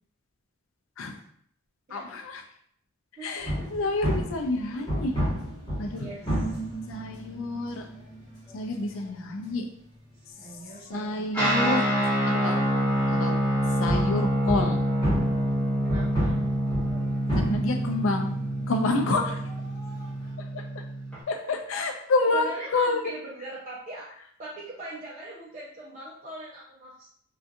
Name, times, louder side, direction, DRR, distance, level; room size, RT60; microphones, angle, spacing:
voice 1, 1.9-2.4 3.2-5.1 5.8-6.1 6.9-7.9 8.5-9.7 10.9-11.9 12.3-12.6 13.1-13.4 13.8-14.8 17.3-18.3 18.7-19.4 20.5-20.8 21.3-23.1, left 2 dB, 70° left, 4 dB, 0.4 m, -28 dB
voice 2, 3.2-3.9 6.0-6.6 10.4-11.3 15.8-16.4 22.3-24.1 24.4-27.1, right 2 dB, 40° right, -8 dB, 0.5 m, -41 dB
sound 1, 3.4-11.4 11.7-11.8 12.6-12.7 13.9-20.3, equal, 20° left, 1.2 m, -33 dB
Guitar, 11.3-21.2, equal, 5° left, 0.7 m, -26 dB
2.7 x 2.3 x 2.4 m, 0.65 s
head